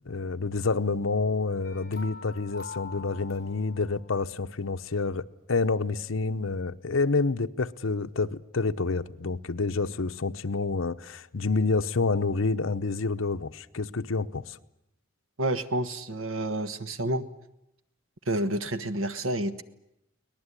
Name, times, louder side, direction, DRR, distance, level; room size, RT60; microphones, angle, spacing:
voice 1, 0.1-5.2 5.5-14.6, left 3 dB, 75° left, 0.9 m, -28 dB
sound 1, 1.6-4.1, left 4 dB, 50° left, 4.4 m, -44 dB
voice 2, 15.4-17.3 18.3-19.6, right 1 dB, 85° right, 1.4 m, -29 dB
23.5 x 19.5 x 9.9 m
head